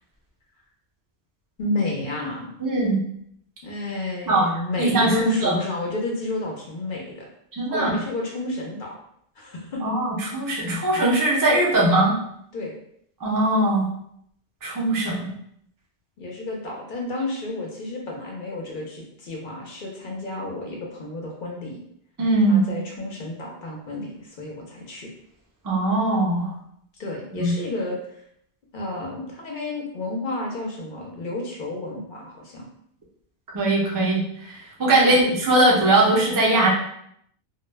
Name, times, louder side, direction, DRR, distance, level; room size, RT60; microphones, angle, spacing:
voice 1, 1.6-2.5 3.6-7.3 7.7-8.9 9.4-9.8 12.5-12.7 16.2-21.8 22.5-25.1 27.0-28.0 28.7-32.7 35.0-35.2, left 2 dB, 55° left, -1 dB, 0.7 m, -31 dB
voice 2, 2.6-3.0 4.3-4.5 4.8-5.6 7.5-7.9 9.8-12.1 13.2-13.9 14.6-15.3 22.2-22.6 25.6-26.5 27.4-27.5 33.5-36.7, right 2 dB, 25° right, -4 dB, 0.4 m, -20 dB
2.2 x 2.1 x 3.2 m, 0.71 s
omnidirectional pair, 1.1 m